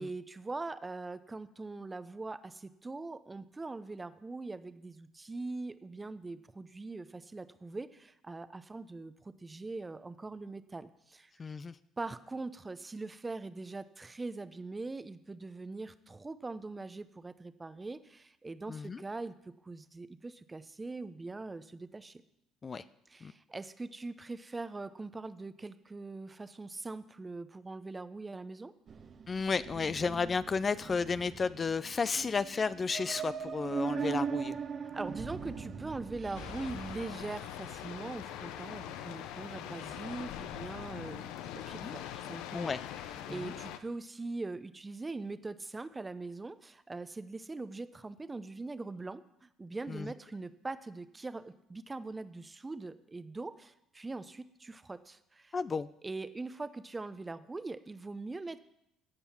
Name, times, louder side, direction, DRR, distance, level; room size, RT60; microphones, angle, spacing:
voice 1, 0.0-11.3 12.0-19.3 19.6-22.2 23.1-28.7 34.9-42.7 43.2-55.5 56.0-58.6, right 3 dB, 20° right, 13 dB, 0.7 m, -42 dB
voice 2, 11.4-11.7 18.7-19.0 22.6-22.8 23.2-23.3 29.3-34.6 41.8-41.9 42.5-42.8 43.3-43.6 49.9-50.1 55.5-55.9, left 5 dB, 35° left, 15 dB, 0.4 m, -33 dB
sound 1, 28.9-37.1, right 6 dB, 45° right, 1.0 m, -39 dB
sound 2, 36.3-43.8, left 11 dB, 80° left, 0.6 m, -42 dB
15.5 x 5.5 x 5.9 m, 0.79 s
supercardioid pair, 65°, 0 cm